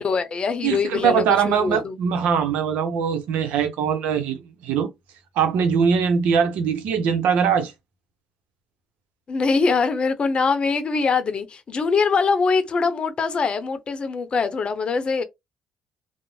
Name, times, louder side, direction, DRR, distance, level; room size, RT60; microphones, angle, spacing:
voice 1, 0.0-2.0 9.3-15.2, left 4 dB, 40° left, 0.7 m, -23 dB
voice 2, 0.6-4.9 5.4-7.7, right 7 dB, 80° right, 0.7 m, -21 dB
2.6 x 2.0 x 3.1 m
supercardioid pair, 75°, 3 cm